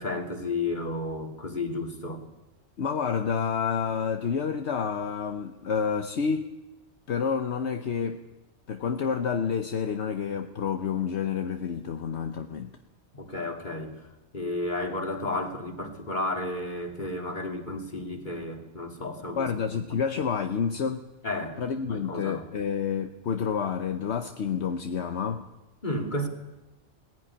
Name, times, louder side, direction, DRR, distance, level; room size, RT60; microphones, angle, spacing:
voice 1, 0.0-2.2 13.1-14.0 14.3-19.5 21.2-21.6 21.9-22.4 25.8-26.3, left 2 dB, 40° left, 2 dB, 2.8 m, -32 dB
voice 2, 2.8-6.5 7.1-8.2 8.7-12.7 19.4-21.1 21.6-25.5, left 6 dB, 70° left, 6 dB, 1.2 m, -29 dB
18.5 x 16.0 x 9.9 m, 1.0 s
omnidirectional pair, 1.2 m